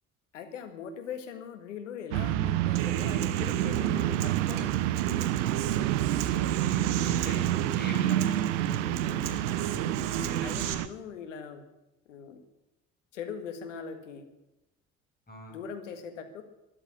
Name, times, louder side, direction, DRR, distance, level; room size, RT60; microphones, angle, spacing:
voice 1, 0.3-5.0 10.4-11.7 12.0-12.4 13.1-14.3 15.5-16.4, left 7 dB, 85° left, 7 dB, 1.7 m, -41 dB
sound 1, 2.1-10.9, right 14 dB, 80° right, 0.7 m, -28 dB
Human voice / Acoustic guitar, 2.7-10.7, right 7 dB, 65° right, 1.7 m, -37 dB
voice 2, 6.3-7.4 7.8-9.3 15.3-15.6, equal, 25° left, 2 dB, 7.1 m, -41 dB
13.0 x 11.0 x 8.7 m, 0.94 s
hypercardioid pair, 50°, 36 cm